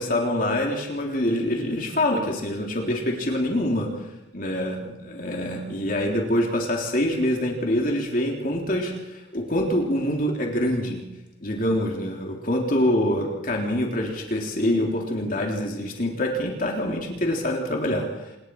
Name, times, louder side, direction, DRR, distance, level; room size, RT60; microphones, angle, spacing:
voice 1, 0.0-4.1 4.3-11.0 11.4-18.4, left 1 dB, 45° left, 0 dB, 3.4 m, -25 dB
27.0 x 20.5 x 4.7 m, 0.94 s
head